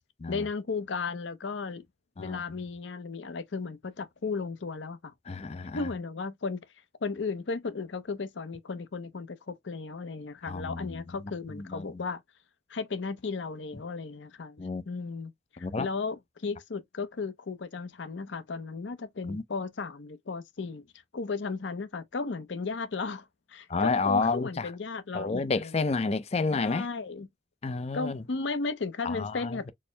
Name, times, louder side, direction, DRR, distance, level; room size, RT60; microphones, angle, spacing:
voice 1, 0.3-1.8 2.2-5.1 5.7-6.7 7.0-12.2 12.7-15.3 15.6-20.9 21.1-25.8 26.5-27.3 27.9-29.7, left 4 dB, 75° left, 0.6 m, -35 dB
voice 2, 5.3-5.9 10.5-11.0 11.5-12.0 14.6-14.8 15.6-15.9 19.3-19.4 23.7-24.7 25.1-26.9 27.6-28.2 29.0-29.7, left 4 dB, 35° left, 0.4 m, -30 dB
4.3 x 2.1 x 3.2 m
head